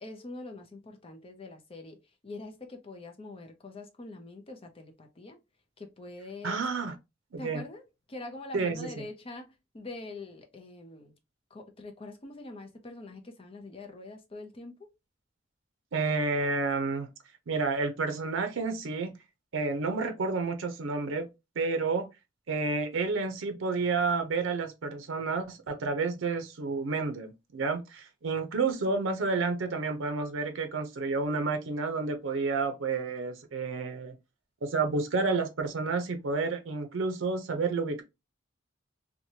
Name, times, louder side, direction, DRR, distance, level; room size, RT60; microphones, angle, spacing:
voice 1, 0.0-5.4 5.8-6.6 7.4-11.1 11.5-14.9, left 2 dB, 30° left, 0.6 m, -44 dB
voice 2, 6.4-7.0 7.3-7.6 8.5-8.9 15.9-17.1 17.5-19.1 19.5-21.3 21.6-22.1 22.5-34.2 34.6-38.0, right 4 dB, 85° right, 0.5 m, -30 dB
2.9 x 2.2 x 2.6 m
head